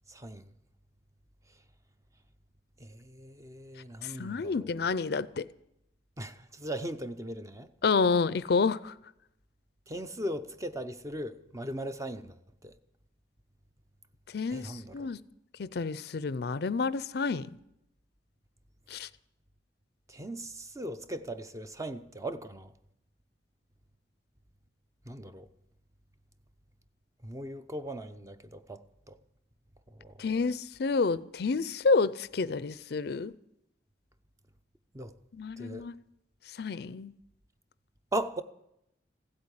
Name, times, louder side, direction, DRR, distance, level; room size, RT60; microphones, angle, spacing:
voice 1, 0.1-0.5 2.8-4.7 6.2-7.7 9.9-12.7 14.5-15.0 20.1-22.7 25.1-25.5 27.2-29.2 30.0-30.1 34.9-35.1 35.6-35.9 38.1-38.4, right 1 dB, 20° right, 0.6 m, -38 dB
voice 2, 4.0-5.5 7.8-8.9 14.3-15.2 15.6-17.5 18.9-19.1 30.2-33.3 35.3-35.9 36.6-37.1, left 4 dB, 60° left, 0.5 m, -29 dB
16.0 x 8.5 x 9.7 m
head